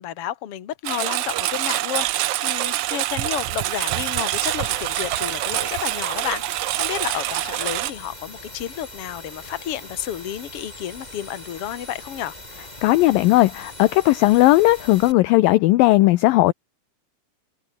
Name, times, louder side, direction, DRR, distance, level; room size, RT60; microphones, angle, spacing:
voice 1, 0.0-12.4, left 11 dB, 45° left, 2.2 m, -31 dB
Engine, 0.8-7.9, right 15 dB, 85° right, 1.6 m, -25 dB
sound 1, 4.3-15.1, left 1 dB, 10° left, 5.7 m, -41 dB
voice 2, 12.8-16.5, left 18 dB, 75° left, 2.2 m, -16 dB
omnidirectional pair, 4.5 m